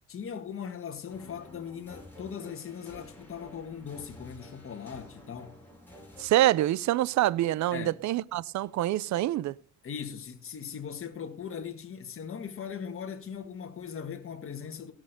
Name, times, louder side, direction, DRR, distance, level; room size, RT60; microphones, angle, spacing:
voice 1, 0.1-5.6 7.7-8.0 9.8-14.9, left 7 dB, 45° left, 1.9 m, -39 dB
sound 1, 1.1-6.2, left 1 dB, 5° left, 7.9 m, -51 dB
voice 2, 6.2-9.5, right 14 dB, 70° right, 0.5 m, -26 dB
17.0 x 6.5 x 5.2 m
cardioid pair, 90°, 30 cm